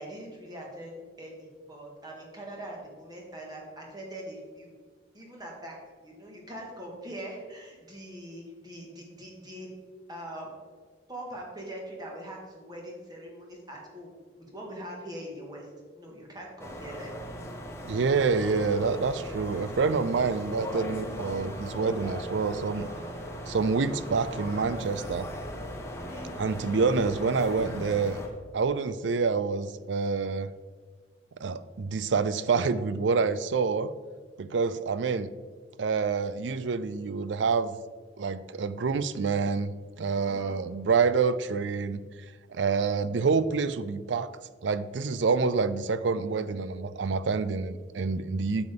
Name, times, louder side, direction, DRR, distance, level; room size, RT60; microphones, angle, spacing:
voice 1, 0.0-4.7 5.1-9.7 10.1-10.5 11.1-15.7 15.9-17.1 25.9-26.3 40.2-40.6, right 1 dB, 20° right, -1 dB, 2.0 m, -42 dB
sound 1, 16.6-28.3, equal, 15° left, 1.1 m, -38 dB
voice 2, 17.8-22.9 23.5-25.3 26.4-28.2 28.5-30.5 31.4-33.9 34.4-35.3 35.8-37.7 38.2-39.7 40.0-42.0 42.5-44.3 44.6-48.7, right 4 dB, 90° right, 14 dB, 0.5 m, -27 dB
9.4 x 7.0 x 3.8 m, 1.5 s
head